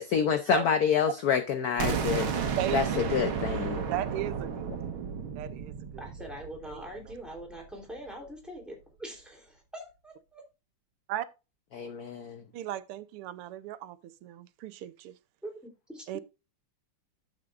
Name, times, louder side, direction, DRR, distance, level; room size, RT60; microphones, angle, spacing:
voice 1, 0.0-3.8 11.7-12.4, left 7 dB, 65° left, 0.9 m, -28 dB
sound 1, 1.8-7.6, right 6 dB, 70° right, 2.0 m, -33 dB
voice 2, 2.6-2.9 3.9-4.7 5.3-6.4 6.6-7.1 11.1-11.3 12.5-15.1 16.1-16.2, right 13 dB, 90° right, 1.7 m, -36 dB
voice 3, 6.0-10.4 15.4-16.0, right 1 dB, ahead, 3.2 m, -43 dB
11.5 x 7.4 x 2.5 m
omnidirectional pair, 2.4 m